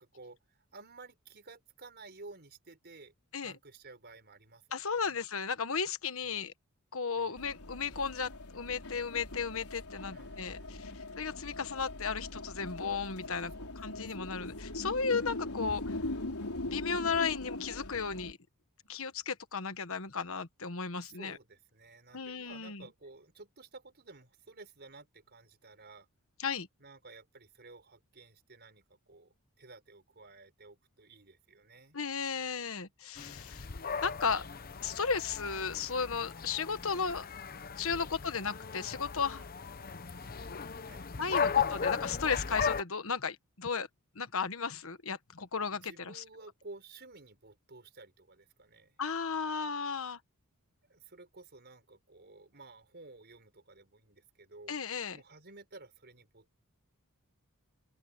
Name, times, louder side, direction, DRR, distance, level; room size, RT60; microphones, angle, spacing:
voice 1, 0.0-3.1 3.4-5.2 6.2-6.5 7.2-7.5 10.1-11.3 13.3-14.4 15.2-15.7 20.9-26.1 26.8-32.0 33.2-33.7 37.8-38.1 40.2-41.1 41.3-41.9 45.7-49.0 50.8-54.8 55.1-56.6, right 3 dB, 50° right, 5.1 m, -54 dB
voice 2, 4.7-6.5 6.9-10.9 11.2-13.5 13.8-16.0 16.7-18.4 18.9-21.4 22.1-22.8 26.4-26.7 31.9-33.7 34.0-34.4 34.8-37.3 37.8-39.5 41.2-43.9 44.1-46.2 49.0-50.2 54.7-55.2, left 5 dB, 65° left, 1.3 m, -35 dB
sound 1, 7.4-18.3, left 2 dB, 90° left, 3.9 m, -41 dB
sound 2, 33.2-42.8, left 6 dB, 45° left, 0.8 m, -36 dB
open air
head